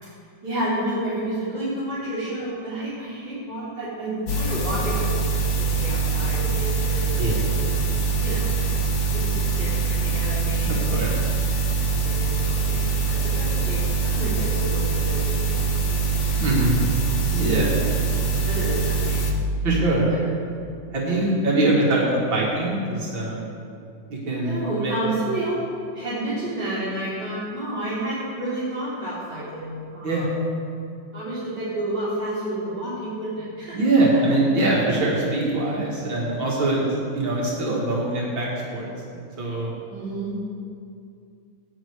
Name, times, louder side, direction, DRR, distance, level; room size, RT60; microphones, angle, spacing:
voice 1, 0.4-5.2 5.6-7.3 7.6-8.5 9.1-11.0 12.0-15.7 18.5-19.2 20.1-20.3 20.9-21.2 24.4-25.6 25.9-30.3 31.1-33.8 39.9-40.4, right 1 dB, 60° right, -13 dB, 4.5 m, -30 dB
sound 1, 4.3-19.3, right 4 dB, 50° left, 1.6 m, -23 dB
voice 2, 10.7-11.2 16.4-16.8 17.3-17.7 19.6-20.1 20.9-23.5 24.1-24.9 30.0-30.3 33.7-36.8 37.1-38.9 39.4-39.7, right 2 dB, 75° right, -5 dB, 2.9 m, -23 dB
18.5 x 9.8 x 4.8 m, 2.5 s
omnidirectional pair, 2.1 m